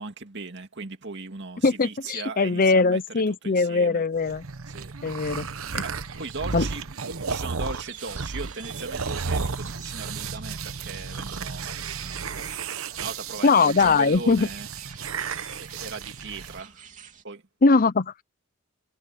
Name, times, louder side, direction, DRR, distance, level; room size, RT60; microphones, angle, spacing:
voice 1, 0.0-4.0 4.7-5.0 5.8-6.9 7.3-12.6 13.0-14.7 15.5-16.8 17.2-17.4, right 4 dB, 55° right, 2.3 m, -38 dB
voice 2, 1.6-4.4 5.0-5.5 5.7-5.8 6.5-6.7 13.4-14.5 17.6-18.2, left 4 dB, 40° left, 0.6 m, -21 dB
sound 1, 4.2-16.6, right 5 dB, 75° right, 1.0 m, -33 dB
sound 2, 7.7-17.2, right 7 dB, 35° right, 3.0 m, -48 dB
head